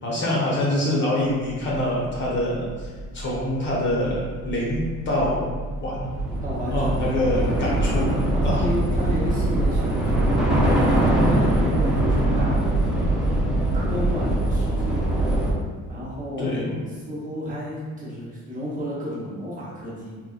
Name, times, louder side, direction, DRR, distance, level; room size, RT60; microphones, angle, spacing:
voice 1, 0.0-2.9 3.1-5.4 5.8-6.1 6.7-8.7 16.4-16.7, left 1 dB, 40° left, -4 dB, 0.6 m, -25 dB
Train / Subway metro underground, 2.1-2.2 2.5-15.5, right 1 dB, 5° right, 0.3 m, -22 dB
voice 2, 6.4-7.7 8.3-13.1 13.5-15.0 15.9-20.2, equal, 25° right, -7 dB, 0.7 m, -32 dB
4.0 x 2.2 x 2.3 m, 1.5 s
cardioid pair, 170°, 29 cm